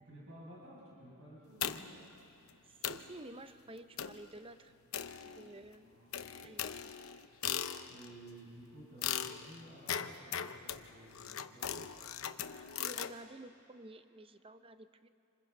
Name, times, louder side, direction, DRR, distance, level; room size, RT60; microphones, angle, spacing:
voice 1, 0.0-2.1 5.8-6.3 7.9-12.0, right 1 dB, 65° right, -6 dB, 6.2 m, -54 dB
sound 1, 1.6-2.1 2.5-2.6 2.8-3.1 4.0-4.3 4.9-5.7 6.1-8.1 9.0-13.1, left 9 dB, 70° left, 0.8 m, -39 dB
voice 2, 2.6-4.7 5.4-6.9 12.8-15.1, right 1 dB, 25° right, 10 dB, 0.6 m, -52 dB
27.0 x 26.0 x 5.4 m, 2.8 s
head